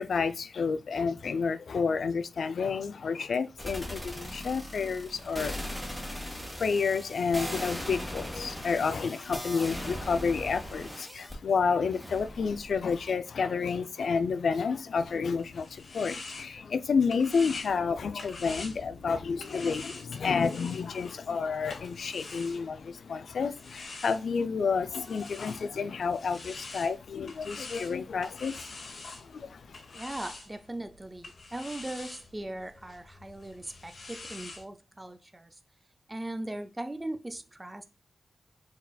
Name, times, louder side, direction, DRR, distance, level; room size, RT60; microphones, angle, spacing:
voice 1, 0.0-5.6 6.2-29.8, left 5 dB, 75° left, 0.4 m, -30 dB
sound 1, 3.6-11.4 11.9-13.1, left 1 dB, 5° left, 1.7 m, -39 dB
sound 2, 15.1-23.0 23.6-34.6, left 3 dB, 55° left, 0.9 m, -46 dB
voice 2, 29.9-35.6 36.1-37.8, right 1 dB, 15° right, 0.4 m, -39 dB
4.1 x 4.0 x 2.3 m
wide cardioid pair, 110°, 0 cm